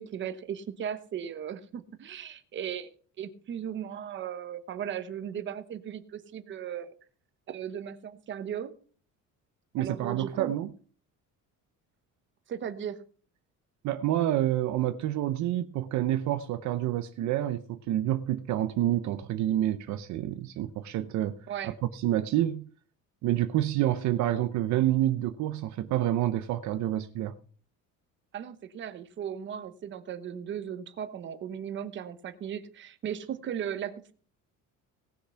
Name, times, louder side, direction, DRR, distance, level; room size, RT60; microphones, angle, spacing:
voice 1, 0.0-6.9 7.5-8.7 9.8-10.5 12.5-13.0 21.5-21.7 28.3-34.1, right 9 dB, 35° right, 1.1 m, -37 dB
voice 2, 9.7-10.7 13.8-21.3 21.6-22.7 23.2-27.3, right 13 dB, 60° right, 0.7 m, -28 dB
18.0 x 6.8 x 5.6 m
cardioid pair, 175°, 32 cm